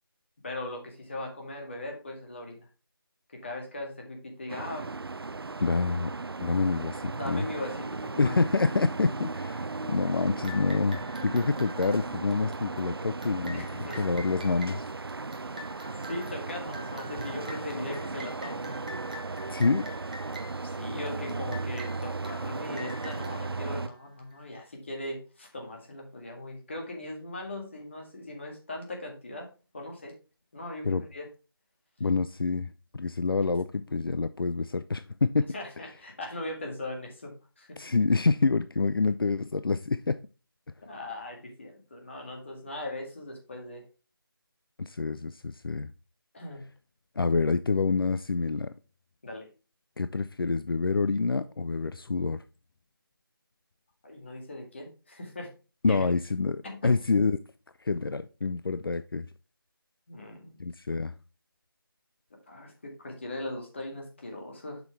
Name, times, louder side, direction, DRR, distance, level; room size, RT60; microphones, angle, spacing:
voice 1, 0.4-2.7 3.3-4.9 7.1-8.4 13.5-14.0 15.4-15.7 16.1-18.8 20.6-29.5 29.7-30.1 30.5-31.3 35.5-37.7 40.8-43.8 46.3-46.6 49.2-49.5 54.0-55.5 55.9-56.1 56.6-56.9 60.1-60.5 62.5-64.8, left 1 dB, 30° left, 1.8 m, -39 dB
sound 1, 4.5-23.9, right 3 dB, 80° right, 0.5 m, -36 dB
voice 2, 5.6-7.5 8.2-14.8 19.5-19.9 30.8-31.0 32.0-35.5 37.8-40.2 44.8-45.9 47.2-48.7 50.0-52.4 55.8-57.4 57.8-59.3 60.6-61.1, left 4 dB, 70° left, 0.5 m, -27 dB
sound 2, 10.4-24.6, equal, 20° right, 0.8 m, -47 dB
7.4 x 6.1 x 3.2 m
figure-of-eight pair, 170°, 12 cm